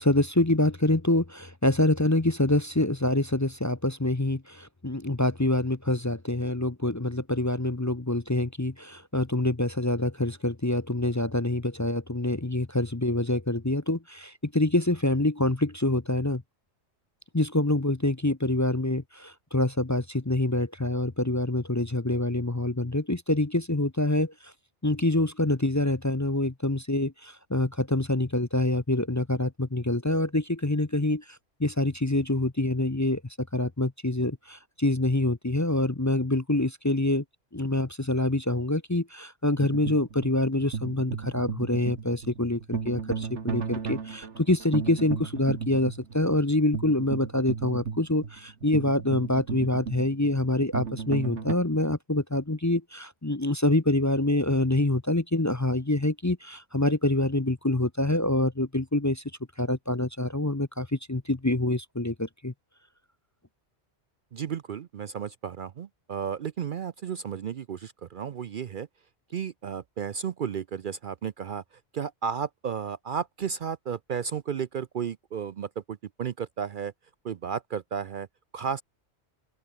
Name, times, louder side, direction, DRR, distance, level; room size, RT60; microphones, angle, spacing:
voice 1, 0.0-16.4 17.3-24.3 24.8-31.2 31.6-33.2 33.5-37.2 37.5-59.2 59.6-62.5, left 1 dB, 15° left, 0.8 m, -26 dB
sound 1, 39.6-51.5, right 6 dB, 85° right, 1.9 m, -35 dB
voice 2, 64.3-68.9 69.3-71.6 71.9-76.9 77.2-78.3 78.5-78.8, right 7 dB, 55° right, 0.7 m, -33 dB
open air
omnidirectional pair, 1.2 m